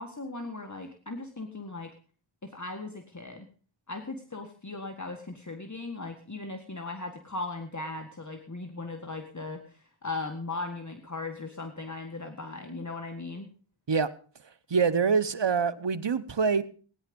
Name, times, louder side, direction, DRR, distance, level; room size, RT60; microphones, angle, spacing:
voice 1, 0.0-1.9 2.4-3.5 3.9-13.5, left 3 dB, 35° left, 4 dB, 1.8 m, -38 dB
voice 2, 14.7-16.6, right 5 dB, 60° right, 13 dB, 1.1 m, -25 dB
18.0 x 10.0 x 5.3 m, 0.41 s
wide cardioid pair, 40°, 48 cm